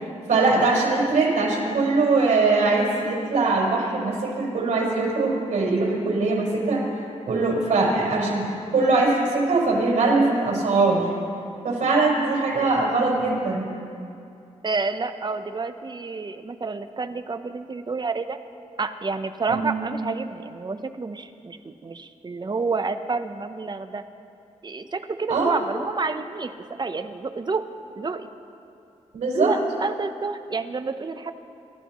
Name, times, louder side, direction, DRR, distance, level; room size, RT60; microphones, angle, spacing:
voice 1, 0.3-6.9 7.3-8.5 8.7-11.1 11.6-13.6 19.5-19.6 25.3-25.5 29.1-29.5, right 3 dB, 85° right, -4 dB, 4.9 m, -21 dB
voice 2, 14.6-18.4 18.8-24.0 24.6-26.5 26.8-27.7 27.9-28.3 29.3-31.3, right 4 dB, 35° right, 9 dB, 0.9 m, -29 dB
29.0 x 13.5 x 3.1 m, 2.6 s
cardioid pair, 80°, 13 cm